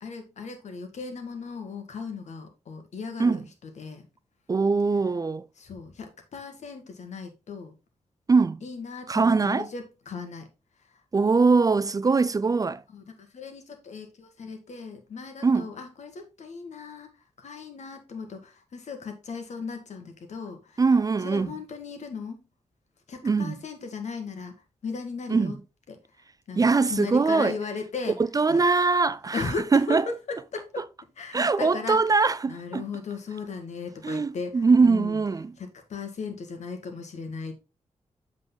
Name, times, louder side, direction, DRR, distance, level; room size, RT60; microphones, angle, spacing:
voice 1, 0.0-4.0 5.6-7.7 8.6-10.5 10.9-11.0 12.9-17.1 17.4-20.8 21.2-22.4 23.1-24.5 24.8-25.6 25.9-26.0 26.5-28.2 28.5-28.6 29.3-30.9 31.2-32.1 32.5-35.2 35.6-37.5, left 5 dB, 75° left, 1.5 m, -37 dB
voice 2, 4.5-5.5 8.3-8.6 9.1-9.7 11.1-12.8 15.4-15.7 20.8-21.5 23.2-23.5 25.3-25.6 26.6-27.6 28.3-30.0 31.3-32.8 34.0-35.5, right 4 dB, 30° right, 0.3 m, -22 dB
7.6 x 3.8 x 3.8 m
cardioid pair, 60°, 12 cm